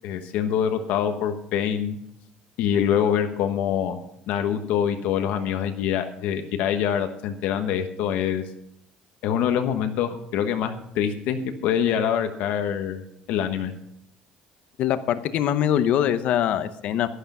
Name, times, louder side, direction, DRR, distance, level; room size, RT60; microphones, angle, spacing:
voice 1, 0.0-2.0 2.6-4.0 4.3-8.4 9.2-13.0 13.3-13.7, left 9 dB, 65° left, 7 dB, 1.2 m, -25 dB
voice 2, 14.8-17.1, left 10 dB, 50° left, 12 dB, 0.8 m, -23 dB
11.5 x 11.5 x 5.6 m, 0.75 s
cardioid pair, 180°, 3 cm